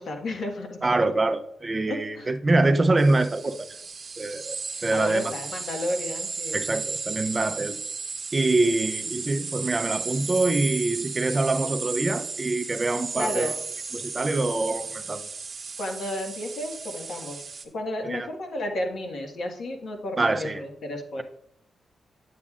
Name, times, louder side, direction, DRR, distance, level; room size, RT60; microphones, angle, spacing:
voice 1, 0.0-1.0 1.9-2.3 4.7-6.7 8.6-8.7 13.1-13.6 15.8-21.2, left 1 dB, 75° left, 1.5 m, -33 dB
voice 2, 0.8-3.7 4.2-4.6 4.8-5.3 6.5-7.7 8.3-13.5 13.9-15.2 18.1-18.3 20.2-20.6, right 2 dB, 30° right, 0.4 m, -24 dB
sound 1, 3.0-17.6, right 4 dB, 45° right, 1.0 m, -34 dB
8.6 x 8.3 x 2.4 m
wide cardioid pair, 110°, 0 cm